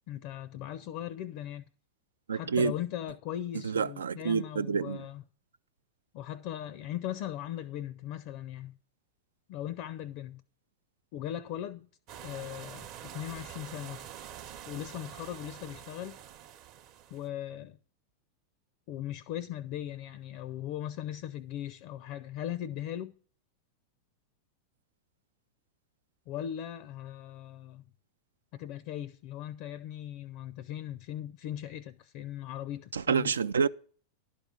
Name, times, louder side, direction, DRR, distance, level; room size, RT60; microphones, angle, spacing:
voice 1, 0.1-1.7 2.3-5.2 6.1-8.8 9.5-10.4 11.1-11.9 12.2-14.1 14.7-16.2 17.1-17.8 18.9-23.1 26.3-27.8 28.5-33.3, left 11 dB, 45° left, 0.5 m, -39 dB
voice 2, 2.3-2.7 3.6-5.0 32.9-33.7, right 6 dB, 70° right, 0.4 m, -28 dB
sound 1, 12.1-17.3, right 10 dB, 40° right, 0.9 m, -46 dB
11.5 x 4.7 x 8.2 m
figure-of-eight pair, 90°, 0 cm